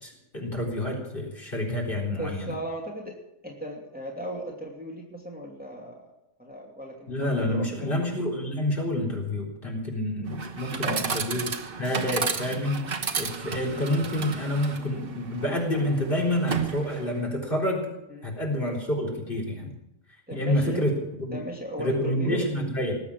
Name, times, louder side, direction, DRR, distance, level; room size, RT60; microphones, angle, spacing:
voice 1, 0.0-2.5 7.1-11.5 11.8-17.9 18.2-19.7 20.3-20.9 21.3-21.5 21.8-23.0, left 1 dB, 40° left, -1 dB, 4.1 m, -28 dB
voice 2, 2.1-3.2 3.4-6.0 6.4-7.9 10.8-11.0 18.1-18.3 20.3-20.9 21.3-22.5, equal, 5° right, -1 dB, 2.7 m, -37 dB
Chatter / Coin (dropping), 10.3-17.3, right 5 dB, 45° right, 1.4 m, -33 dB
19.5 x 8.5 x 8.5 m, 0.86 s
omnidirectional pair, 1.5 m